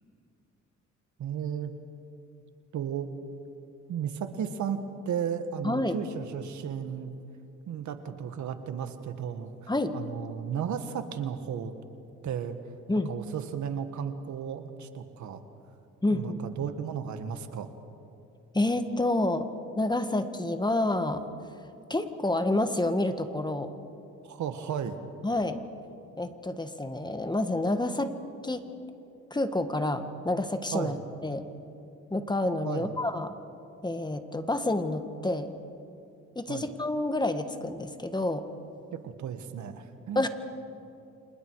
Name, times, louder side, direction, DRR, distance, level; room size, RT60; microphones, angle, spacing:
voice 1, 1.2-1.7 2.7-3.1 3.9-7.1 7.7-11.7 12.2-12.6 13.1-15.4 16.1-17.7 24.2-25.0 30.7-31.0 32.6-32.9 36.5-36.7 38.9-40.2, right 8 dB, 70° right, 8 dB, 1.7 m, -34 dB
voice 2, 5.6-6.0 9.7-9.9 12.9-13.1 16.0-16.5 18.5-19.5 19.8-21.2 21.9-23.7 25.2-25.6 26.2-28.1 28.4-28.7 29.3-31.4 32.1-33.3 33.8-35.5 36.3-38.5 40.1-40.3, left 2 dB, 15° left, 8 dB, 1.6 m, -28 dB
29.5 x 26.5 x 4.8 m, 2.7 s
cardioid pair, 90°, 30 cm